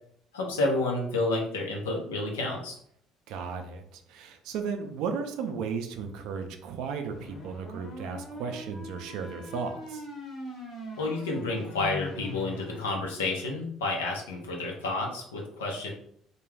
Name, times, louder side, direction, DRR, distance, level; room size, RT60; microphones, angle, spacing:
voice 1, 0.3-2.8 11.0-15.9, left 2 dB, 85° left, -1 dB, 0.6 m, -30 dB
voice 2, 3.3-10.1, right 5 dB, 70° right, 6 dB, 0.4 m, -35 dB
sound 1, 7.1-13.0, left 2 dB, 50° left, 1.0 m, -41 dB
2.3 x 2.2 x 3.2 m, 0.68 s
hypercardioid pair, 60°, 0 cm